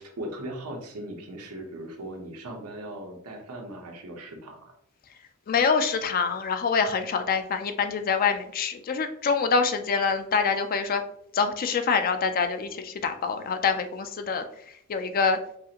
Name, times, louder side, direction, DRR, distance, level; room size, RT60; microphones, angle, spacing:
voice 1, 0.0-4.7, right 1 dB, 90° right, 2 dB, 0.9 m, -38 dB
voice 2, 5.5-11.0 11.3-14.4 14.9-15.4, left 5 dB, 40° left, 8 dB, 0.4 m, -25 dB
4.7 x 2.5 x 2.9 m, 0.69 s
head